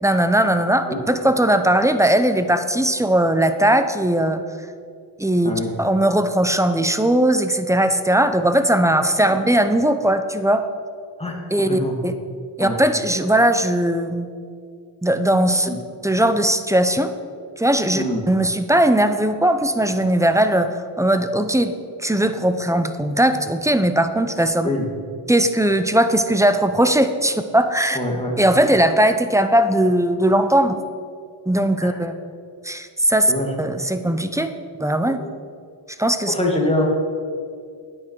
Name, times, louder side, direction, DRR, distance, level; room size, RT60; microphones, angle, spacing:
voice 1, 0.0-4.4 5.2-10.7 11.5-12.1 12.6-14.3 15.0-15.7 16.0-17.1 17.6-24.7 25.3-28.0 28.4-30.8 31.5-32.2 32.6-33.3 33.6-34.5 34.8-35.2 36.0-36.3, right 1 dB, 5° right, 9 dB, 0.6 m, -19 dB
voice 2, 11.7-12.0 12.6-12.8 15.7-15.8 17.9-18.2 24.6-24.9 27.9-28.3 31.8-31.9 33.3-33.5 35.2-35.3 36.3-36.9, left 1 dB, 10° left, -1 dB, 2.0 m, -24 dB
9.5 x 9.1 x 4.6 m, 2.3 s
cardioid pair, 65°, 49 cm